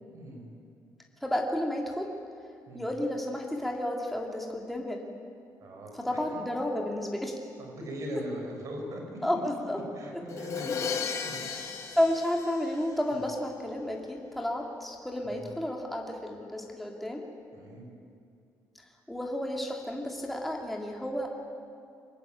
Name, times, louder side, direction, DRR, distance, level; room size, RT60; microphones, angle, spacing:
voice 1, 0.1-0.5 2.7-2.9 5.6-6.4 7.6-9.0 9.9-11.0 11.2-11.5 13.1-13.2 15.2-15.5 17.5-17.9, equal, 50° right, 2 dB, 6.1 m, -40 dB
voice 2, 1.2-2.1 2.7-5.1 5.9-7.4 9.2-9.8 10.1-10.2 11.4-11.6 11.9-17.3 19.1-21.3, left 1 dB, ahead, 0 dB, 2.7 m, -31 dB
Crash cymbal, 10.3-13.2, left 6 dB, 50° left, 2.2 m, -35 dB
24.0 x 20.0 x 9.3 m, 2.4 s
cardioid pair, 150°, 7 cm